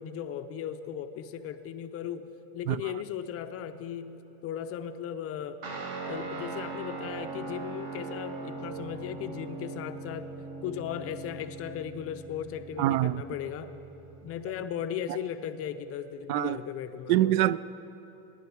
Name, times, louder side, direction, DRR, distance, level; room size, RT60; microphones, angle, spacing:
voice 1, 0.0-5.6 5.9-10.3 10.6-13.7 14.2-17.4, left 9 dB, 35° left, 0.4 m, -37 dB
Guitar, 5.6-14.4, right 3 dB, 50° right, 1.9 m, -40 dB
voice 2, 12.8-13.2 16.3-16.6 17.1-17.6, right 14 dB, 75° right, 0.5 m, -25 dB
19.5 x 11.0 x 4.6 m
supercardioid pair, 130°, 48 cm